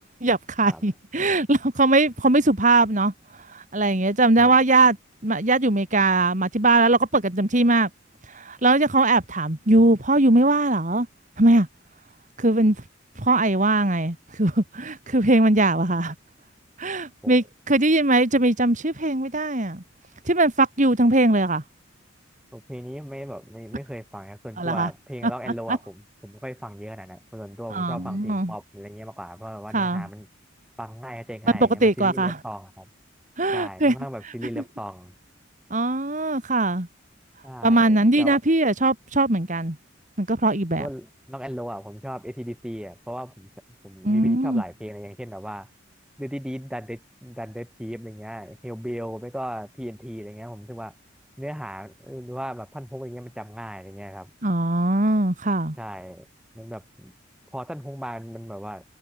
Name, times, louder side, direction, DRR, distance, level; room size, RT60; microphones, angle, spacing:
voice 1, 0.2-3.1 3.5-5.0 5.2-7.9 8.3-11.1 11.4-11.7 12.4-12.8 13.2-16.1 16.8-19.8 20.3-21.6 24.6-24.9 25.7-25.8 27.7-28.5 29.7-30.1 31.8-32.3 33.4-33.9 35.7-36.9 37.6-39.8 40.2-40.9 44.0-44.6 54.4-55.8, right 2 dB, 40° right, 2.6 m, -20 dB
voice 2, 22.5-30.3 30.8-32.9 33.5-35.2 37.4-38.4 40.8-43.5 43.8-45.7 46.2-50.9 51.4-54.3 55.8-56.3 56.5-57.1 57.5-58.8, equal, 5° right, 5.3 m, -37 dB
head